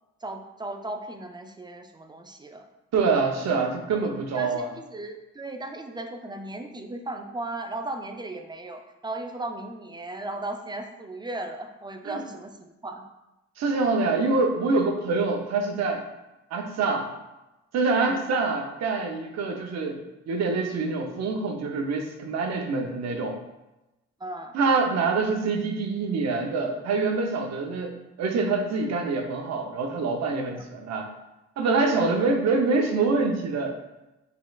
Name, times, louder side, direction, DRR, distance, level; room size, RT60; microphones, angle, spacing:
voice 1, 0.2-2.7 3.9-4.1 4.3-13.0 18.0-18.2 24.2-24.6 30.5-30.6, right 2 dB, 15° right, 5 dB, 0.3 m, -36 dB
voice 2, 2.9-4.7 12.0-12.2 13.6-16.0 16.5-17.1 17.7-23.4 24.5-31.1 31.6-33.8, right 3 dB, 60° right, 3 dB, 0.7 m, -25 dB
4.0 x 3.8 x 2.3 m, 0.98 s
cardioid pair, 90°, 30 cm